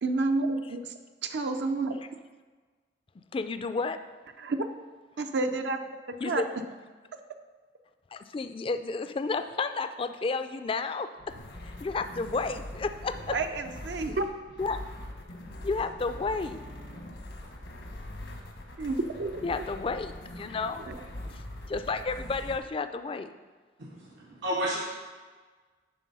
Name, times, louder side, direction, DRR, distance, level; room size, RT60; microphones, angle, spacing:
voice 1, 0.0-0.9 1.2-2.0 4.4-4.7 5.2-6.0 6.2-6.4 13.3-14.2 18.8-19.6 20.9-21.0, right 3 dB, 70° right, 6 dB, 0.5 m, -30 dB
voice 2, 3.3-4.0 6.2-6.5 8.1-11.1 11.6-13.4 14.6-14.8 15.6-16.6 19.4-20.9 21.3-21.4 21.7-23.3, left 4 dB, 30° left, 10 dB, 0.3 m, -31 dB
sound 1, 11.2-22.6, left 1 dB, 80° left, 1.1 m, -42 dB
voice 3, 23.8-24.8, equal, 90° right, -4 dB, 1.2 m, -32 dB
9.9 x 3.9 x 5.4 m, 1.4 s
head